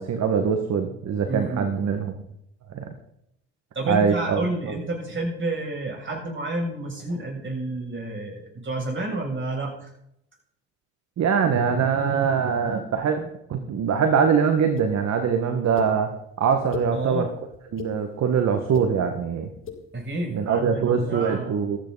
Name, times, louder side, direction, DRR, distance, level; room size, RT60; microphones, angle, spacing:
voice 1, 0.0-2.1 2.7-2.9 3.9-4.4 4.7-4.8 11.2-16.1 16.4-17.3 17.7-19.5 20.3-21.8, right 6 dB, 50° right, 6 dB, 1.9 m, -23 dB
voice 2, 1.3-1.7 3.7-9.9 16.9-17.3 19.9-21.6, right 2 dB, 35° right, 0 dB, 7.6 m, -30 dB
sound 1, 14.8-14.9 15.8-15.9 16.5-16.9 17.5-17.9 18.6-18.9 19.5-19.8, left 8 dB, 35° left, 5.0 m, -34 dB
15.0 x 14.0 x 4.2 m, 0.78 s
hypercardioid pair, 60°, 35 cm